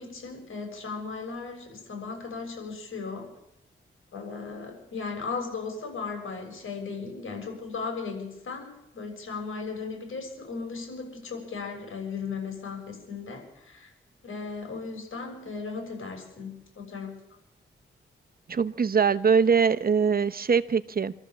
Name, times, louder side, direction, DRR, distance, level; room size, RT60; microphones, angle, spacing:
voice 1, 0.0-3.3 4.1-13.9 14.2-17.1, left 4 dB, 80° left, 2 dB, 6.7 m, -36 dB
voice 2, 18.5-21.1, right 6 dB, 45° right, 12 dB, 0.8 m, -22 dB
26.5 x 13.5 x 7.3 m, 0.87 s
cardioid pair, 80°, 21 cm